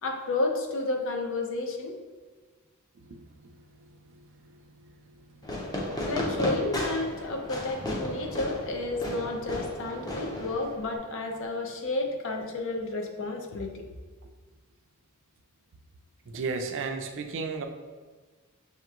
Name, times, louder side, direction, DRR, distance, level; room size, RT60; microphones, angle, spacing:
voice 1, 0.0-2.0 6.0-13.9, left 2 dB, 60° left, 3 dB, 0.6 m, -31 dB
Fireworks, 5.4-11.0, left 1 dB, 20° left, 0.6 m, -34 dB
voice 2, 16.3-17.7, right 4 dB, 60° right, 6 dB, 0.4 m, -33 dB
5.7 x 2.9 x 2.4 m, 1.4 s
head